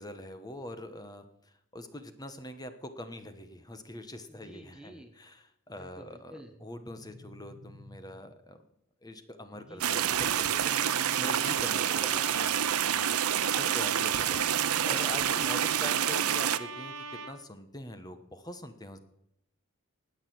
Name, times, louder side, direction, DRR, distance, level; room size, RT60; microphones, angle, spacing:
voice 1, 0.0-8.6 9.0-10.8 11.2-12.0 12.8-13.2 13.4-19.0, left 1 dB, 15° left, 9 dB, 1.1 m, -44 dB
voice 2, 4.3-5.2 5.8-6.6 9.5-10.6 11.7-12.7 14.1-14.4, right 1 dB, 5° right, 6 dB, 0.9 m, -50 dB
sound 1, 6.5-8.5 10.2-12.2 13.9-15.9, equal, 35° right, 1.7 m, -52 dB
sound 2, 9.8-16.6, right 9 dB, 80° right, 0.7 m, -28 dB
Trumpet, 12.2-17.3, right 4 dB, 65° right, 2.3 m, -41 dB
19.5 x 6.6 x 7.9 m, 0.80 s
head